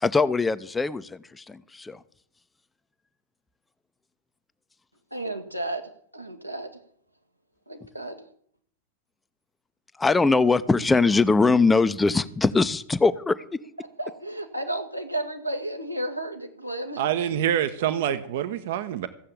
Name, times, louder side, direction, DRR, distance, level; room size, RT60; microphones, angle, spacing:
voice 1, 0.0-2.0 10.0-13.4, left 3 dB, 10° left, 14 dB, 0.7 m, -21 dB
voice 2, 5.1-5.8 6.1-6.7 7.7-8.2 14.0-17.0, right 1 dB, 90° right, 2 dB, 1.9 m, -32 dB
voice 3, 17.0-19.1, right 10 dB, 55° right, 12 dB, 0.9 m, -26 dB
15.0 x 7.6 x 8.5 m, 0.63 s
figure-of-eight pair, 90°, 0 cm